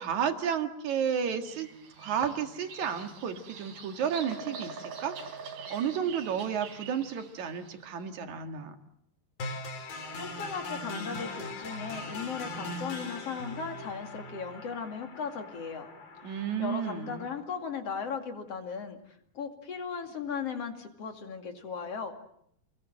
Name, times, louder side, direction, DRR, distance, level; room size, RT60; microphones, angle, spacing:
voice 1, 0.0-1.7 2.0-5.2 5.7-8.8 16.2-17.3, right 8 dB, 55° right, 6 dB, 3.0 m, -32 dB
Bird vocalization bird call bird song, 1.2-7.8, right 5 dB, 75° right, 5.2 m, -44 dB
sound 1, 9.4-17.4, left 2 dB, 75° left, 5.3 m, -40 dB
voice 2, 10.2-15.9 16.3-19.0 19.3-22.1, left 6 dB, 45° left, 5 dB, 3.2 m, -37 dB
29.5 x 21.5 x 7.6 m, 0.73 s
omnidirectional pair, 4.2 m